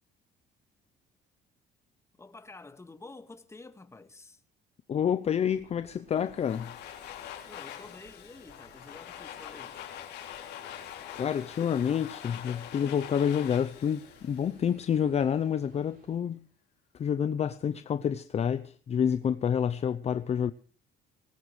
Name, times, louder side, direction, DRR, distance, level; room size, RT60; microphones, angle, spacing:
voice 1, 2.2-4.4 7.5-9.9, left 3 dB, 15° left, 1.9 m, -49 dB
voice 2, 4.9-6.7 11.1-16.5 16.9-20.5, left 8 dB, 40° left, 0.7 m, -28 dB
sound 1, 5.5-16.2, right 6 dB, 60° right, 5.1 m, -60 dB
Domestic sounds home sounds, 6.2-15.1, left 11 dB, 80° left, 3.5 m, -44 dB
20.0 x 19.0 x 3.3 m
cardioid pair, 110°, 17 cm